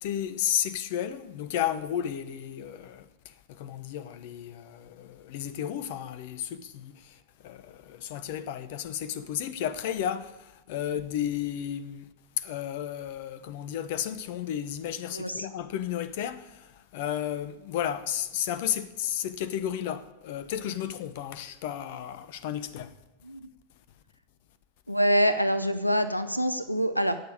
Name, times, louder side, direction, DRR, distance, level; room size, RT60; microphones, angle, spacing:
voice 1, 0.0-12.1 12.4-22.9, left 10 dB, 50° left, 1.0 m, -33 dB
voice 2, 24.9-27.2, equal, 90° left, 0.7 m, -25 dB
17.5 x 7.1 x 8.5 m
figure-of-eight pair, 90°, 0 cm